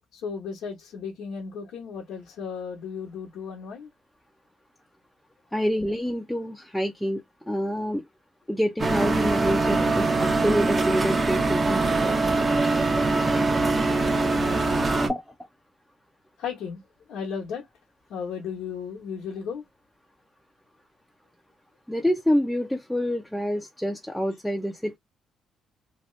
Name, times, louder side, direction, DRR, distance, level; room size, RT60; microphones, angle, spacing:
voice 1, 0.1-3.9 16.4-16.8 17.1-17.7 18.1-19.6, left 6 dB, 80° left, 0.9 m, -35 dB
voice 2, 5.5-8.0 8.5-12.2 15.1-15.2 21.9-25.0, equal, 5° left, 0.5 m, -27 dB
sound 1, 8.8-15.1, right 3 dB, 30° right, 0.7 m, -23 dB
2.8 x 2.3 x 3.0 m
cardioid pair, 90°, 0 cm